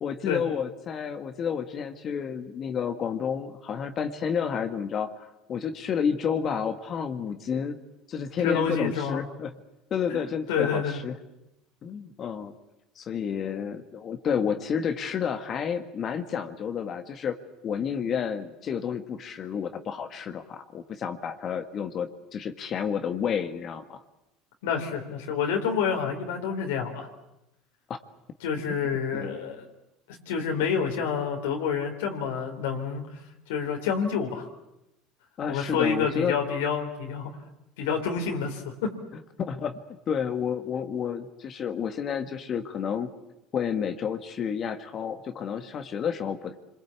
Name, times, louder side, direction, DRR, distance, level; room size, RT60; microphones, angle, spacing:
voice 1, 0.0-7.8 8.1-9.5 9.9-11.2 11.8-12.5 13.0-17.4 17.6-24.0 27.9-28.0 28.7-28.8 29.1-29.3 35.4-36.3 39.4-39.8 40.1-43.1 43.5-46.5, left 7 dB, 45° left, 7 dB, 1.7 m, -30 dB
voice 2, 8.4-9.2 10.1-11.0 24.6-27.1 28.4-29.7 30.3-33.0 33.5-34.5 35.5-37.3 37.8-38.9, left 6 dB, 85° left, 2 dB, 3.7 m, -28 dB
26.5 x 22.0 x 8.4 m, 0.91 s
supercardioid pair, 85°, 0 cm